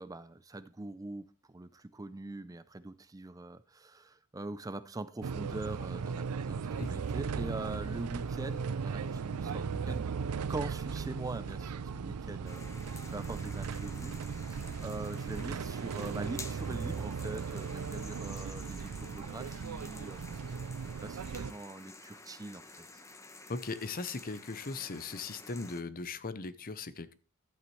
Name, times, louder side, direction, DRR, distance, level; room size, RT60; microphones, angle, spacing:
voice 1, 0.0-10.1 10.5-12.6 13.1-20.2 20.8-23.0, right 2 dB, 15° right, 0.4 m, -43 dB
sound 1, 5.2-21.5, right 6 dB, 85° right, 0.4 m, -37 dB
sound 2, 6.7-14.0, left 1 dB, 55° left, 3.1 m, -57 dB
sound 3, 12.5-25.8, left 3 dB, 15° left, 1.0 m, -51 dB
voice 2, 23.5-27.1, left 3 dB, 40° left, 0.7 m, -38 dB
12.0 x 9.0 x 3.2 m
head